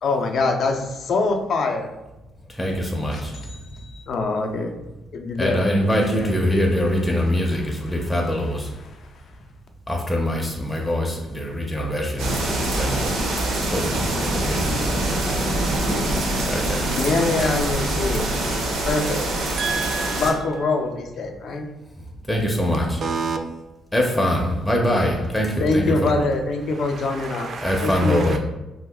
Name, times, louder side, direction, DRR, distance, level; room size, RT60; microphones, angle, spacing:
voice 1, 0.0-1.9 3.1-4.7 5.1-9.0 17.0-18.3 18.8-19.2 20.1-21.7 25.6-27.5 27.8-28.4, left 3 dB, 65° left, 0.4 m, -25 dB
voice 2, 2.6-3.3 5.4-8.7 9.9-13.1 13.7-15.6 16.5-17.0 22.3-23.0 23.9-26.1 27.6-28.4, equal, 10° left, 0.5 m, -23 dB
sound 1, 12.2-20.3, right 1 dB, 85° right, 0.7 m, -24 dB
voice 3, 19.5-20.4 23.0-23.4 26.8-28.4, right 5 dB, 55° right, 0.4 m, -30 dB
2.8 x 2.3 x 3.4 m
cardioid pair, 90°, 0 cm